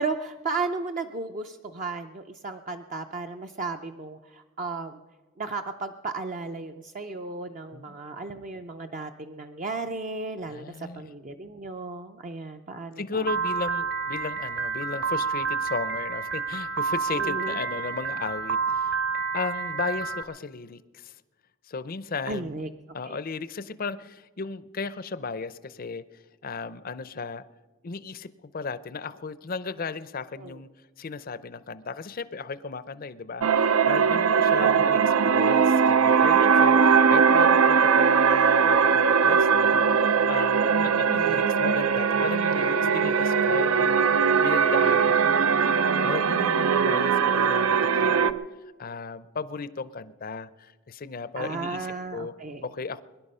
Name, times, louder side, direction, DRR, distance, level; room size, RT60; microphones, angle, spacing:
voice 1, 0.0-5.0 5.4-13.3 17.1-17.6 22.3-22.7 23.0-23.2 30.4-30.6 34.6-35.0 40.6-41.0 51.3-52.7, right 3 dB, 35° right, 5 dB, 0.5 m, -34 dB
voice 2, 10.5-11.1 13.0-19.0 19.3-21.1 21.6-22.6 22.9-27.4 27.8-30.7 31.0-35.0 35.3-45.6 46.0-48.4 48.8-51.8 52.1-52.3 52.6-53.0, left 4 dB, 40° left, 16 dB, 0.6 m, -35 dB
Piano, 13.3-20.2, right 5 dB, 50° right, 1.1 m, -29 dB
sound 1, 33.4-48.3, right 6 dB, 80° right, 0.6 m, -20 dB
22.0 x 11.0 x 5.5 m, 1.3 s
head